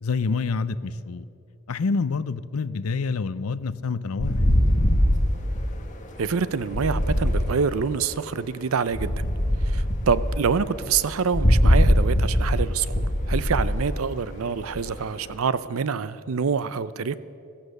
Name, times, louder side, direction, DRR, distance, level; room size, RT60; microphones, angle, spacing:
voice 1, 0.0-1.2 1.7-4.6, left 4 dB, 85° left, 16 dB, 0.5 m, -27 dB
sound 1, 4.2-8.2 8.9-15.3, equal, 35° left, 1.6 m, -22 dB
voice 2, 6.2-9.1 9.6-17.2, right 5 dB, 75° right, 16 dB, 0.5 m, -26 dB
14.5 x 14.5 x 6.6 m, 2.6 s
head